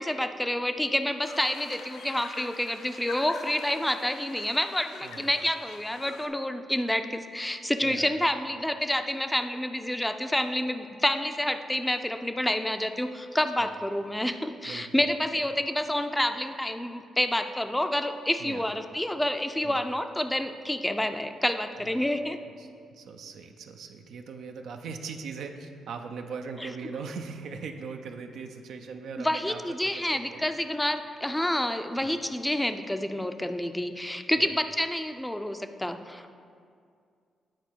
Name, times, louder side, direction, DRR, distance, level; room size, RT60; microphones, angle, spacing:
voice 1, 0.0-22.4 26.6-26.7 29.2-36.3, left 1 dB, 10° left, 8 dB, 0.5 m, -28 dB
sound 1, 1.2-6.3, left 5 dB, 80° left, 0.5 m, -44 dB
voice 2, 7.8-8.1 13.6-13.7 14.7-15.1 18.4-18.6 19.6-19.8 21.8-22.0 22.6-30.5 32.0-32.1 34.4-34.5, right 5 dB, 75° right, 5 dB, 0.5 m, -40 dB
9.1 x 4.2 x 4.6 m, 2.3 s
supercardioid pair, 55°, 0 cm